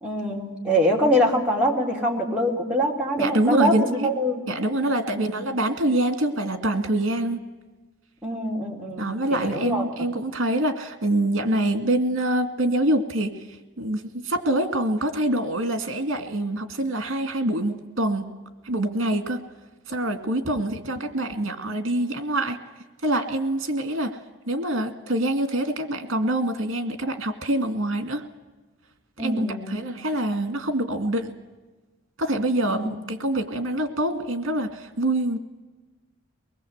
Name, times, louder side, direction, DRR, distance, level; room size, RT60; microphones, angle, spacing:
voice 1, 0.0-4.4 5.1-5.5 8.2-9.8 20.2-20.7 29.2-29.8 32.7-32.9, equal, 5° right, -3 dB, 3.3 m, -24 dB
voice 2, 3.2-4.1 4.5-7.4 9.0-13.3 13.8-18.3 18.7-19.4 19.9-22.6 23.0-24.1 24.5-28.2 29.2-31.3 32.2-32.8 33.1-35.4, right 1 dB, 75° right, 7 dB, 2.2 m, -25 dB
23.5 x 20.5 x 8.1 m, 1.2 s
head